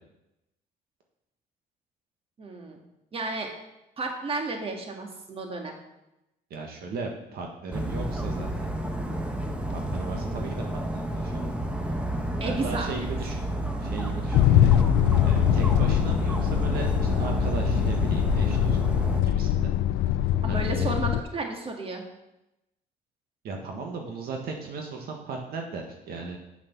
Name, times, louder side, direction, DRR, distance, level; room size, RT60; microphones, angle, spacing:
voice 1, 2.4-2.8 3.1-3.5 4.0-5.7 12.4-13.0 20.4-22.0, right 3 dB, 35° right, 3 dB, 1.9 m, -32 dB
voice 2, 6.5-8.7 9.7-11.4 12.4-13.5 13.8-14.7 15.2-18.8 19.2-19.7 20.1-20.9 23.4-26.4, right 4 dB, 65° right, 2 dB, 1.5 m, -37 dB
Dog, 7.7-19.2, right 1 dB, 5° right, 1.2 m, -30 dB
sound 1, 14.3-21.2, left 12 dB, 90° left, 0.5 m, -23 dB
7.9 x 7.5 x 6.0 m, 0.91 s
cardioid pair, 110°, 17 cm